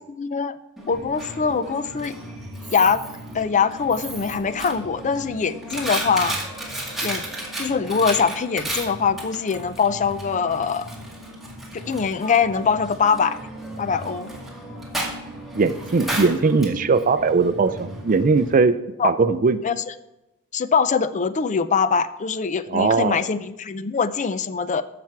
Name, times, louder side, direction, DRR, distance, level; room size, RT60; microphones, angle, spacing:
voice 1, 0.1-0.6 0.9-2.2 2.7-3.0 3.3-6.4 7.0-7.2 7.6-10.9 11.7-13.4 13.8-14.3 19.0-19.1 19.6-19.9 20.5-24.8, left 5 dB, 35° left, 14 dB, 0.5 m, -23 dB
Coin (dropping), 0.8-18.5, right 1 dB, ahead, 2.1 m, -34 dB
voice 2, 15.5-18.8 19.0-19.6 22.7-23.2, right 4 dB, 40° right, 12 dB, 0.4 m, -19 dB
14.5 x 6.0 x 4.6 m, 0.95 s
head